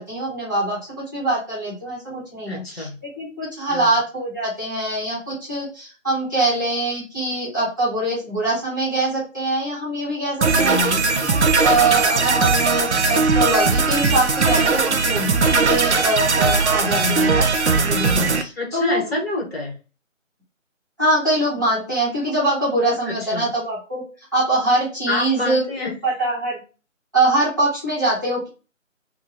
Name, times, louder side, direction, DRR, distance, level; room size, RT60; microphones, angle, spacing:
voice 1, 0.0-2.9 3.2-10.8 11.2-19.0 21.0-24.0 24.3-25.7 26.0-26.6 27.1-28.5, right 2 dB, 15° right, -10 dB, 0.9 m, -23 dB
voice 2, 2.4-3.0 3.7-3.9 10.6-11.1 17.0-17.4 18.5-19.7 23.0-23.5 25.1-25.9, left 2 dB, 50° left, -1 dB, 1.2 m, -27 dB
sound 1, 10.4-18.4, right 4 dB, 60° right, 0.5 m, -19 dB
2.9 x 2.2 x 2.7 m, 0.34 s
figure-of-eight pair, 170°, 40 cm